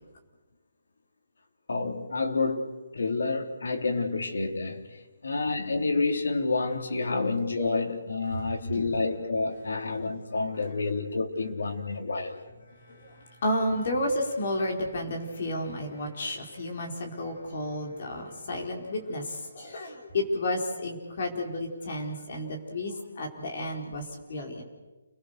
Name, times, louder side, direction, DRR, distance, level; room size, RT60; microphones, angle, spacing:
voice 1, 1.7-12.4, left 3 dB, 85° left, 4 dB, 3.7 m, -29 dB
voice 2, 12.8-24.6, left 1 dB, 40° left, 2 dB, 4.6 m, -32 dB
29.5 x 21.5 x 6.7 m, 1.2 s
hypercardioid pair, 180°, 0 cm